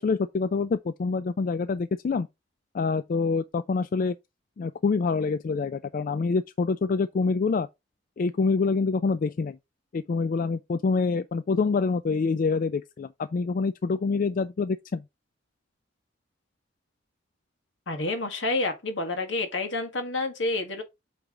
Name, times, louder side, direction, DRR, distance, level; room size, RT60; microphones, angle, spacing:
voice 1, 0.0-2.3 2.7-4.2 4.6-7.7 8.2-9.6 9.9-15.0, left 4 dB, 45° left, 0.3 m, -26 dB
voice 2, 17.9-20.8, left 2 dB, 75° left, 1.7 m, -29 dB
8.0 x 3.4 x 3.8 m
head